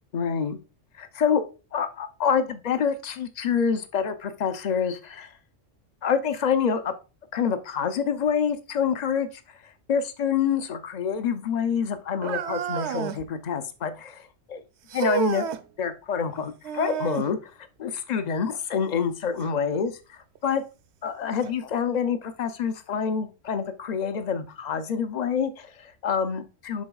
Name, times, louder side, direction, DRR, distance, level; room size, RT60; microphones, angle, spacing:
voice 1, 0.1-0.6 1.0-1.4 1.7-5.4 6.0-6.9 7.3-14.6 14.9-15.5 15.8-17.5 17.8-19.9 20.4-20.6 21.0-26.8, left 7 dB, 40° left, 9 dB, 0.7 m, -27 dB
sound 1, 12.2-13.3 14.9-15.6 16.6-17.3 19.4-19.5 20.4-20.5 21.4-21.5, right 9 dB, 65° right, 0.8 m, -30 dB
11.5 x 3.9 x 2.3 m, 0.31 s
omnidirectional pair, 1.3 m